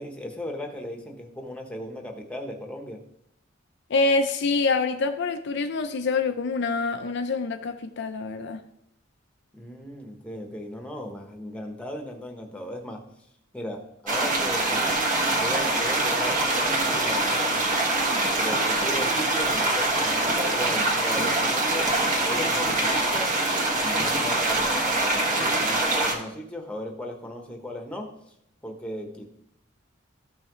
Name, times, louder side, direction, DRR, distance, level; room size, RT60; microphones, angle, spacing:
voice 1, 0.0-3.0 9.5-13.0 13.5-17.7 18.3-21.9 22.2-23.3 23.8-28.1 28.6-29.2, left 1 dB, 5° left, 1.1 m, -36 dB
voice 2, 3.9-8.6, left 3 dB, 55° left, 0.5 m, -26 dB
sound 1, 14.1-26.1, right 2 dB, 40° right, 1.5 m, -24 dB
13.5 x 5.6 x 3.1 m
head